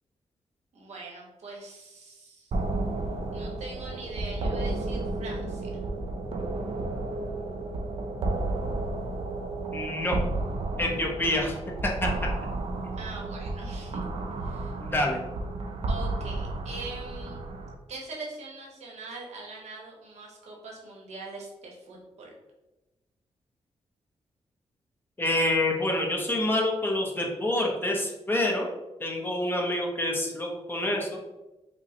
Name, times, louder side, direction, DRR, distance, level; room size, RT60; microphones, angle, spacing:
voice 1, 0.7-2.5 3.3-5.8 12.9-14.0 14.4-14.7 15.9-17.4 17.9-22.3, right 3 dB, 75° right, -2 dB, 1.0 m, -42 dB
sound 1, 2.5-17.7, right 2 dB, 60° right, 0.5 m, -32 dB
voice 2, 9.7-10.2 10.8-11.6 11.8-12.1 14.8-15.2 25.2-28.7 29.0-31.2, left 1 dB, 20° left, -1 dB, 0.7 m, -27 dB
5.2 x 2.1 x 2.8 m, 1.0 s
cardioid pair, 105°, 11 cm